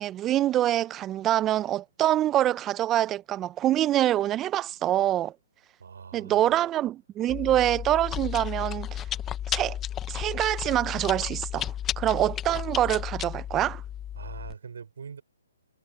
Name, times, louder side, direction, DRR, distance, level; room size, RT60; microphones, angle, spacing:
voice 1, 0.0-5.3 6.1-9.0 9.5-9.8 10.1-13.8, right 13 dB, 20° right, 0.5 m, -25 dB
voice 2, 5.8-6.7 14.1-15.2, right 6 dB, 70° right, 4.9 m, -43 dB
Chewing mastication, 7.3-14.5, left 10 dB, 15° left, 0.9 m, -33 dB
hypercardioid pair, 145°, 0 cm